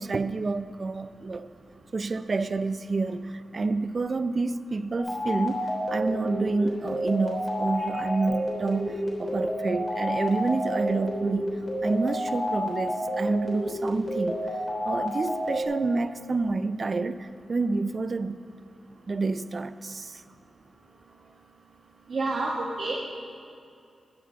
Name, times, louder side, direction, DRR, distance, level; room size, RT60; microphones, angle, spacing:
voice 1, 0.0-1.5 1.9-11.5 11.8-14.4 14.8-18.4 19.1-20.2, right 3 dB, 40° right, 0.4 m, -28 dB
sound 1, 5.0-15.6, equal, 20° left, 3.5 m, -30 dB
voice 2, 22.1-23.0, right 2 dB, 60° right, 1.3 m, -28 dB
12.0 x 7.3 x 7.3 m
wide cardioid pair, 120°, 0 cm